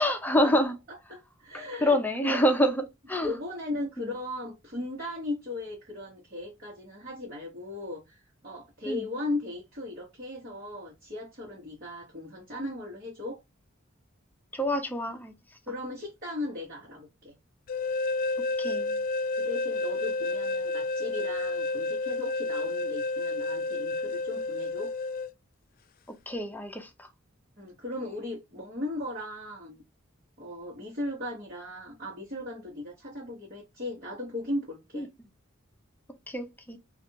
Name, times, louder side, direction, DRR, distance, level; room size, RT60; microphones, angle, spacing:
voice 1, 0.0-0.7 1.8-2.8 3.1-3.4 4.0-4.1 8.9-9.1 14.5-15.3 18.6-19.0 26.3-27.1 34.9-35.1 36.3-36.8, equal, 10° left, 0.7 m, -26 dB
voice 2, 0.9-2.4 3.2-13.4 15.7-17.3 19.4-24.9 27.6-29.8 30.4-35.1, left 2 dB, 45° right, 1.2 m, -37 dB
sound 1, 17.7-25.3, left 3 dB, 45° left, 0.3 m, -30 dB
3.3 x 2.5 x 2.8 m
head